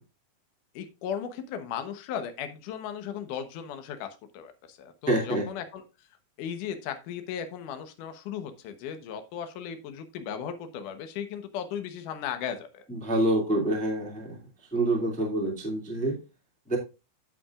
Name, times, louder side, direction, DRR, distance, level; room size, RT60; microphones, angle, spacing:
voice 1, 0.8-4.1 4.3-5.8 6.4-12.8, left 8 dB, 70° left, 8 dB, 1.9 m, -36 dB
voice 2, 5.1-5.5 12.9-14.4 14.7-16.1 16.7-16.8, right 1 dB, 5° left, -1 dB, 1.0 m, -26 dB
15.5 x 5.9 x 2.5 m, 0.28 s
omnidirectional pair, 5.2 m